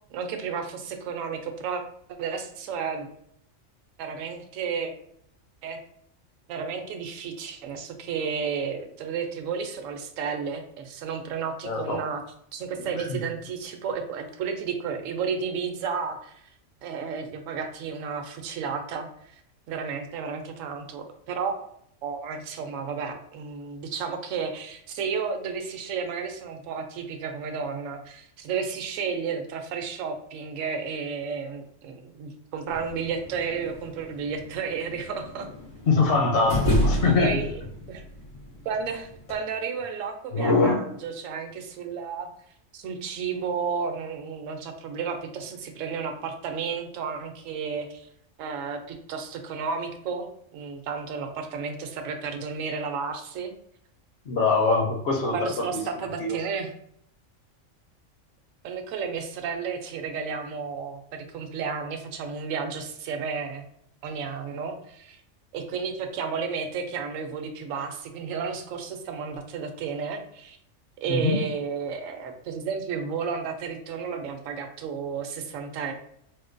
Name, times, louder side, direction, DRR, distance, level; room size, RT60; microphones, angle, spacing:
voice 1, 0.1-1.8 2.2-3.1 4.0-4.9 5.6-5.8 6.5-12.2 12.5-16.4 16.8-19.1 19.7-21.7 22.0-35.5 37.2-37.5 37.9-38.0 38.6-42.3 42.7-48.1 48.4-53.5 55.3-56.7 58.6-63.6 64.0-65.2 65.5-70.6 71.0-75.9, right 6 dB, 75° right, 5 dB, 1.0 m, -32 dB
voice 2, 11.6-12.0 13.0-13.2 35.9-37.4 40.3-40.8 54.3-55.3 56.2-56.4 71.1-71.4, left 3 dB, 60° left, 2 dB, 0.8 m, -22 dB
sound 1, 32.7-39.4, left 1 dB, 85° left, 2.1 m, -32 dB
4.3 x 2.1 x 2.5 m, 0.68 s
omnidirectional pair, 1.4 m